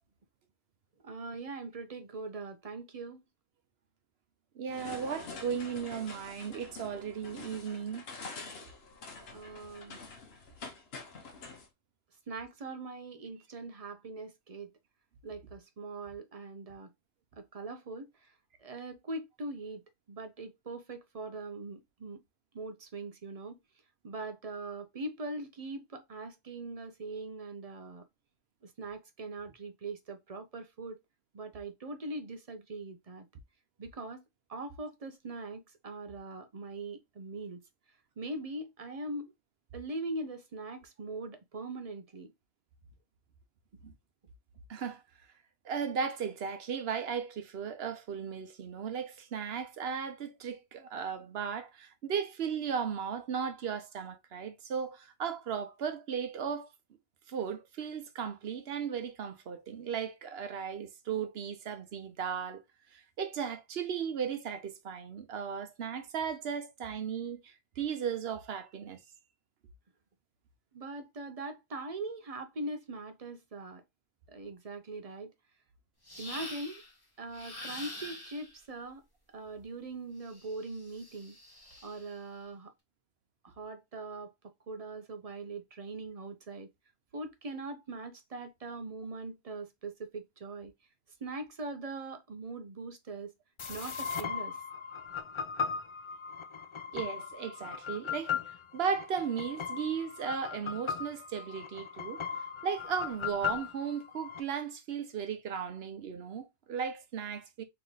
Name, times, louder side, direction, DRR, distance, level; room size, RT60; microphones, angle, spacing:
voice 1, 1.0-3.2 9.3-10.0 12.3-14.7 15.2-16.9 17.4-18.1 18.6-19.8 20.1-22.2 22.5-23.6 24.0-28.0 28.6-31.0 31.3-33.3 33.8-34.2 34.5-37.6 38.2-39.3 39.7-42.3 70.7-73.8 74.3-75.3 76.2-76.8 77.2-79.0 79.3-81.4 81.8-82.7 83.4-84.3 84.7-86.7 87.1-90.7 91.2-93.3 93.7-94.6, right 2 dB, 40° right, 0.6 m, -41 dB
voice 2, 4.6-8.1 43.8-43.9 44.7-45.0 45.6-56.7 57.3-62.6 62.9-69.0 96.9-102.2 102.6-107.6, right 7 dB, 75° right, 1.0 m, -36 dB
sound 1, 4.7-11.7, left 4 dB, 75° left, 1.1 m, -46 dB
sound 2, 76.1-76.9 77.3-78.6 80.3-82.2, left 1 dB, 20° left, 1.4 m, -45 dB
sound 3, 93.6-104.4, left 7 dB, 50° left, 0.3 m, -38 dB
3.3 x 3.0 x 3.9 m
omnidirectional pair, 1.1 m